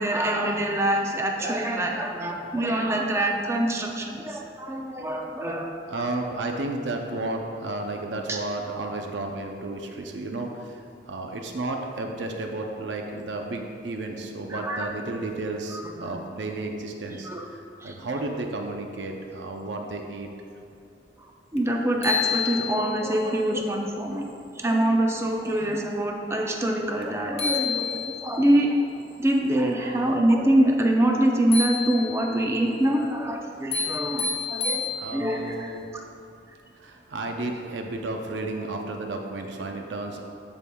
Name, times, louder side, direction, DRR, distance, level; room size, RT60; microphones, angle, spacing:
voice 1, 0.0-5.7 8.3-8.4 14.5-14.9 15.7-16.1 17.2-17.4 17.8-17.9 21.5-24.2 24.6-28.7 29.2-36.0, right 1 dB, 15° right, 1 dB, 0.5 m, -25 dB
voice 2, 4.7-5.1 5.6-20.3 27.2-27.6 29.5-30.1 34.9-35.9 36.7-40.2, right 2 dB, 90° right, 2 dB, 0.6 m, -33 dB
sound 1, 21.6-21.7 22.0-23.1 27.0-27.1 27.4-28.4 31.5-32.4 33.7-35.4, left 6 dB, 35° left, 0.8 m, -29 dB
13.5 x 5.3 x 2.3 m, 2.5 s
head